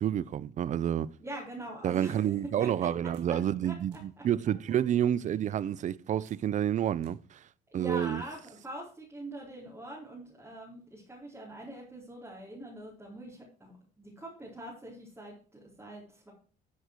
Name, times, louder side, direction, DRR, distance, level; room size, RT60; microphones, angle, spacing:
voice 1, 0.0-1.1 1.8-7.4 7.7-8.2, right 10 dB, 45° right, 0.6 m, -29 dB
voice 2, 1.2-2.9 3.3-3.4 3.6-3.8 4.2-4.3 7.7-13.7 14.0-16.3, right 1 dB, 15° right, 4.2 m, -43 dB
sound 1, 3.1-3.3 3.9-4.0 4.6-5.2 6.3-6.4 7.0-7.1 7.7-8.3, right 6 dB, 85° right, 2.9 m, -58 dB
13.0 x 6.6 x 4.5 m
cardioid pair, 110°, 17 cm